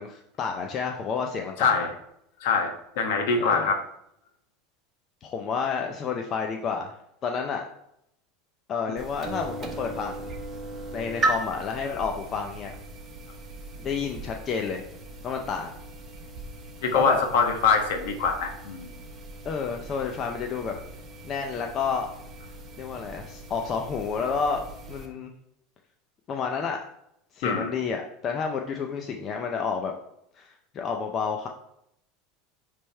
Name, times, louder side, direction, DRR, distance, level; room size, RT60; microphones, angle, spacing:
voice 1, 0.0-1.8 3.4-3.7 5.2-7.6 8.7-10.3 10.9-12.7 13.8-14.8 15.2-15.7 16.9-17.2 19.4-20.7 21.2-22.1 22.8-25.3 26.3-26.8 27.3-29.9 30.3-31.5, left 5 dB, 30° left, 3 dB, 0.5 m, -30 dB
voice 2, 1.6-1.9 2.4-3.8 16.8-18.9 27.4-27.7, left 5 dB, 80° left, 5 dB, 1.2 m, -24 dB
sound 1, 9.0-25.1, right 2 dB, 20° right, 0.9 m, -37 dB
8.7 x 3.4 x 4.4 m, 0.78 s
supercardioid pair, 155°, 0 cm